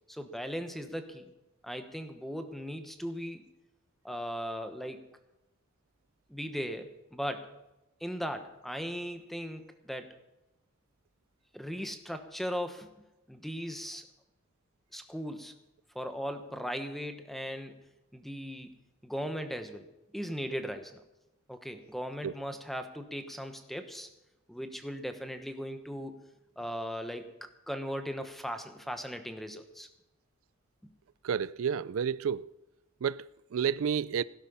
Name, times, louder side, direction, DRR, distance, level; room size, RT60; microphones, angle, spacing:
voice 1, 0.1-1.3 1.6-3.4 4.0-5.0 6.3-7.5 8.0-10.1 11.5-12.9 13.3-14.0 14.9-15.5 15.9-17.8 18.1-18.7 19.0-19.9 20.1-21.0 21.5-24.1 24.5-26.2 26.6-29.9, equal, ahead, 1.2 m, -38 dB
voice 2, 31.2-32.5 33.0-34.2, right 7 dB, 80° right, 0.4 m, -30 dB
16.5 x 11.5 x 5.6 m
head